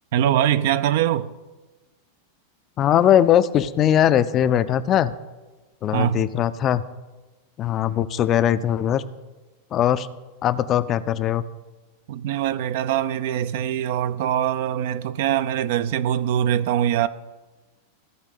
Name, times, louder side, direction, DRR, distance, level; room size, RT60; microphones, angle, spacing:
voice 1, 0.1-1.3 5.9-6.2 12.1-17.1, right 10 dB, 50° right, 0.5 m, -23 dB
voice 2, 2.8-5.1 5.8-6.8 7.6-9.0 9.7-10.1 10.4-11.4, left 10 dB, 30° left, 0.5 m, -20 dB
15.5 x 5.2 x 8.2 m
figure-of-eight pair, 90°, 0 cm